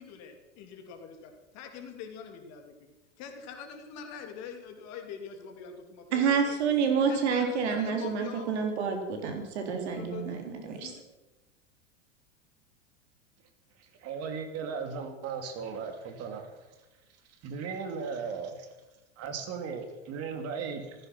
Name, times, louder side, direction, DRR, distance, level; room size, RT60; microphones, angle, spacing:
voice 1, 0.0-6.6 7.1-8.5 9.7-10.4 10.7-11.0, left 6 dB, 45° left, 5 dB, 3.1 m, -44 dB
voice 2, 6.1-10.9, right 6 dB, 65° right, 4 dB, 3.7 m, -28 dB
voice 3, 14.0-16.5 17.4-18.7 19.2-20.9, right 5 dB, 45° right, 6 dB, 2.9 m, -36 dB
15.5 x 15.0 x 6.0 m, 1.1 s
hypercardioid pair, 90°, 36 cm